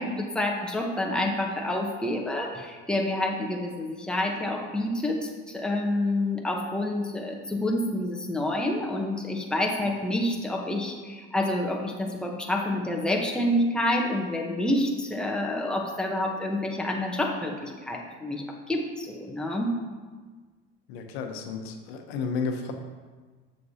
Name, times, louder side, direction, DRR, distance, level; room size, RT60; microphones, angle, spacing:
voice 1, 0.0-19.7, left 1 dB, 5° left, 0 dB, 1.0 m, -28 dB
voice 2, 20.9-22.7, left 5 dB, 85° left, 4 dB, 1.0 m, -32 dB
7.6 x 6.9 x 2.8 m, 1.4 s
supercardioid pair, 105°, 30 cm